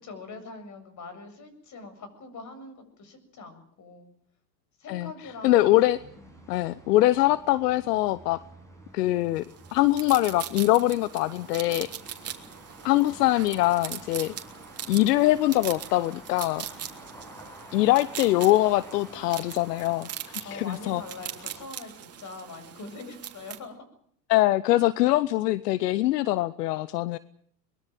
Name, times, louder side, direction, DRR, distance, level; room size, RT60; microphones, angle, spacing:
voice 1, 0.0-4.1 4.8-5.7 6.2-6.5 20.4-23.8, left 3 dB, 35° left, 10 dB, 7.5 m, -43 dB
sound 1, 5.2-21.6, right 1 dB, 5° left, 7.1 m, -49 dB
voice 2, 5.4-6.0 6.5-8.4 8.9-9.4 9.7-11.9 12.8-14.3 14.9-16.7 17.7-20.1 20.3-21.0 24.3-27.2, left 16 dB, 70° left, 17 dB, 1.0 m, -23 dB
sound 2, 9.4-23.6, right 9 dB, 30° right, 3.3 m, -41 dB
23.0 x 22.0 x 7.6 m, 0.64 s
hypercardioid pair, 100°, 50 cm